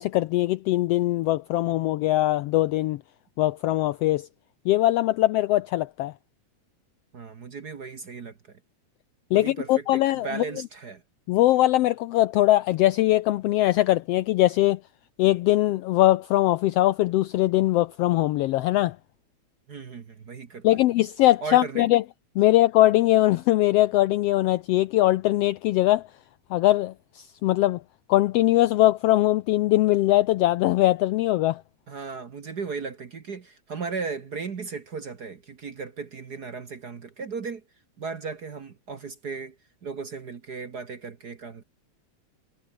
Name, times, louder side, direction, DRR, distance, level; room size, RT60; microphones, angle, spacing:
voice 1, 0.0-3.0 3.4-4.3 4.6-6.1 9.3-10.4 11.3-14.8 15.2-19.0 20.6-22.0 22.3-26.1 26.5-27.8 28.1-31.6, left 15 dB, 85° left, 1.4 m, -21 dB
voice 2, 7.1-8.6 9.3-11.0 19.7-20.8 21.4-21.9 31.9-37.6 38.0-39.6 39.8-41.6, right 5 dB, 45° right, 1.5 m, -36 dB
omnidirectional pair, 3.3 m